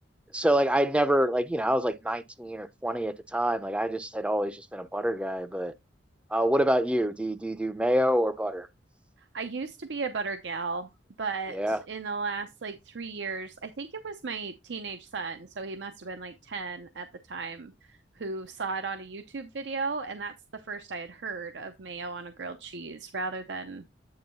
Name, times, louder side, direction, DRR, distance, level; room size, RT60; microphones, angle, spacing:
voice 1, 0.3-5.7 6.3-8.7 11.5-11.8, right 1 dB, 5° right, 0.5 m, -26 dB
voice 2, 9.3-10.9 11.2-23.8, right 4 dB, 70° right, 0.6 m, -35 dB
8.9 x 3.1 x 5.3 m
head